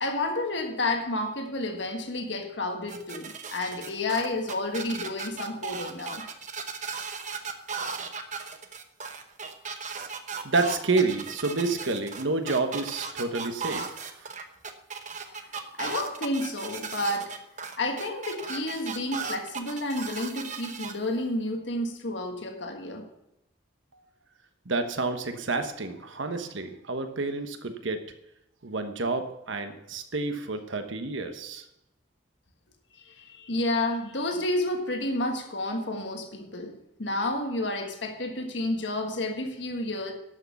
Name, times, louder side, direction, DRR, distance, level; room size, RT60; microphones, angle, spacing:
voice 1, 0.0-6.2 15.2-15.3 15.7-17.3 17.8-23.0 32.9-40.1, left 2 dB, 65° left, 4 dB, 1.6 m, -30 dB
sound 1, 2.9-20.9, right 5 dB, 40° right, 0.9 m, -36 dB
voice 2, 10.4-14.1 24.7-28.0 28.6-31.6, right 3 dB, 80° right, 7 dB, 1.2 m, -29 dB
12.0 x 6.6 x 7.0 m, 0.85 s
head